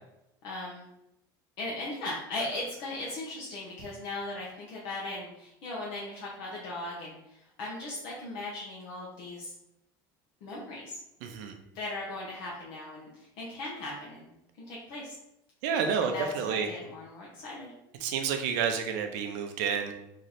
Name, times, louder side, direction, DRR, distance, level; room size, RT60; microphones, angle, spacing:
voice 1, 0.4-0.9 1.6-9.5 10.4-11.0 11.7-14.3 14.6-15.2 16.0-17.7, left 2 dB, 65° left, -5 dB, 0.9 m, -38 dB
voice 2, 11.2-11.5 15.6-16.7 18.0-19.9, right 6 dB, 80° right, 5 dB, 0.5 m, -29 dB
3.1 x 2.7 x 4.0 m, 0.85 s
cardioid pair, 160°, 10 cm